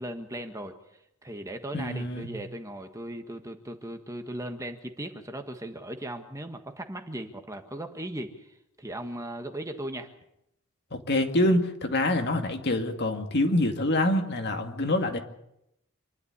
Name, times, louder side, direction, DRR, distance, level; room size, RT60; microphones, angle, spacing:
voice 1, 0.0-10.1, right 1 dB, 15° right, 6 dB, 1.5 m, -38 dB
voice 2, 1.7-2.3 10.9-15.2, left 1 dB, 50° left, 5 dB, 2.3 m, -26 dB
27.0 x 12.0 x 9.7 m, 0.82 s
head